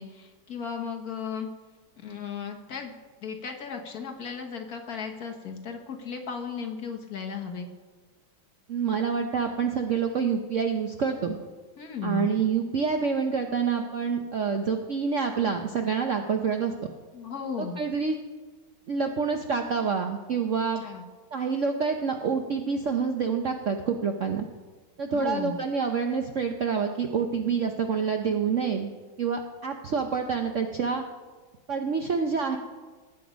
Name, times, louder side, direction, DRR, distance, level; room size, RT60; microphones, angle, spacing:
voice 1, 0.0-1.5 2.0-2.9 3.2-7.7 11.8-12.4 17.1-17.8 20.8-21.0 25.1-25.6, left 6 dB, 50° left, 3 dB, 1.6 m, -35 dB
voice 2, 8.7-11.4 12.0-16.7 17.6-18.2 18.9-20.8 21.3-24.5 25.0-28.9 29.2-31.0 31.7-32.6, right 5 dB, 60° right, 4 dB, 0.8 m, -27 dB
18.5 x 8.7 x 5.1 m, 1.3 s
omnidirectional pair, 2.2 m